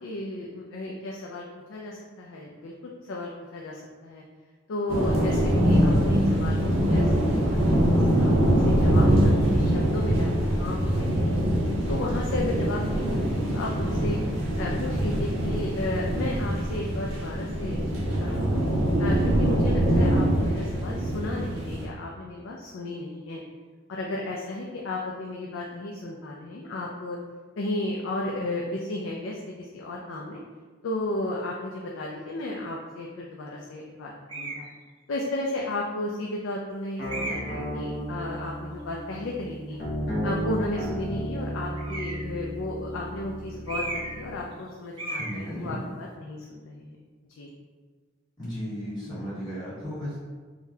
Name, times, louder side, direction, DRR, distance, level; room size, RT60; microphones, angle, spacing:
voice 1, 0.0-4.2 4.7-6.6 6.9-11.3 11.9-14.2 14.6-18.6 19.0-23.4 23.9-27.2 27.6-30.4 30.8-34.7 35.1-39.8 40.2-47.0 47.3-47.5, left 2 dB, 65° left, -2 dB, 0.3 m, -34 dB
sound 1, 4.9-21.9, equal, 70° right, 0.7 m, -23 dB
sound 2, 34.3-34.7 35.5-35.6 37.1-37.6 41.8-42.3 43.7-44.3 44.5-44.7 45.0-45.4, right 2 dB, 25° right, 0.4 m, -34 dB
sound 3, 37.0-44.4, equal, 50° left, 0.7 m, -33 dB
voice 2, 45.2-45.8 48.4-50.2, equal, 20° left, -11 dB, 1.4 m, -34 dB
3.8 x 2.1 x 2.7 m, 1.4 s
head